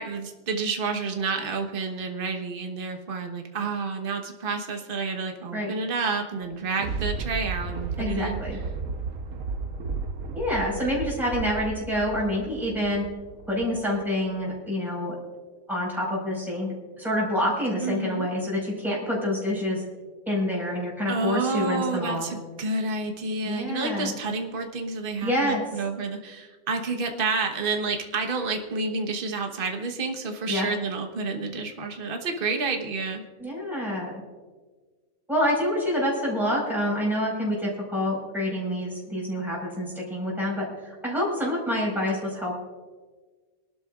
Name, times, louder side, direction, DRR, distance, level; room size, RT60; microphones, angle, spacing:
voice 1, 0.0-8.4 17.8-18.3 21.1-33.2, right 4 dB, 40° right, 4 dB, 1.3 m, -29 dB
Thunder, 6.4-13.9 14.4-14.5, right 4 dB, 70° right, 1.4 m, -34 dB
voice 2, 8.0-8.6 10.3-13.1 13.5-15.2 15.7-16.7 17.0-19.8 20.2-22.3 23.4-24.2 25.2-25.6 30.5-30.7 33.4-34.2 35.3-42.6, left 1 dB, ahead, -4 dB, 4.9 m, -27 dB
23.5 x 12.0 x 2.5 m, 1.4 s
omnidirectional pair, 1.5 m